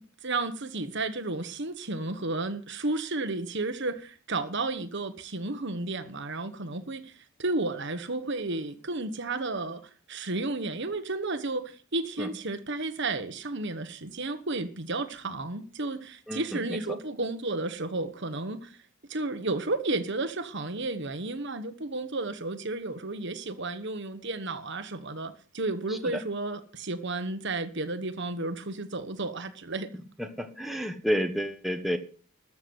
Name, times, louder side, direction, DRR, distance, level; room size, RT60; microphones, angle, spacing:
voice 1, 0.2-7.1 7.4-9.8 10.1-18.8 19.1-29.9, right 2 dB, 55° right, 1.4 m, -32 dB
voice 2, 16.3-16.8 30.2-32.0, equal, ahead, 1.3 m, -30 dB
13.5 x 7.2 x 8.0 m
head